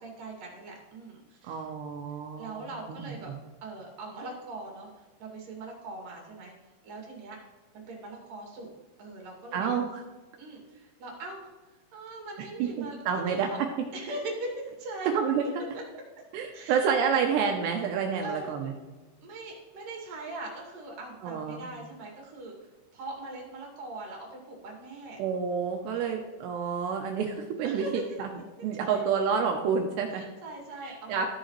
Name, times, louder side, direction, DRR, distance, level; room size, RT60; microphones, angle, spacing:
voice 1, 0.0-1.7 2.4-3.3 3.6-6.5 6.8-7.4 7.7-8.7 9.0-9.7 10.4-13.6 13.9-15.1 16.5-17.4 18.2-18.5 19.2-25.2 27.6-28.0 28.8-29.0 30.1-31.3, right 2 dB, 55° right, -1 dB, 3.1 m, -41 dB
voice 2, 1.4-3.2 9.5-10.0 12.6-13.5 15.1-15.6 16.3-18.7 21.2-21.7 25.2-28.3 28.6-30.2 30.8-31.3, right 6 dB, 85° right, 3 dB, 2.5 m, -29 dB
14.0 x 6.4 x 3.1 m, 1.3 s
omnidirectional pair, 5.6 m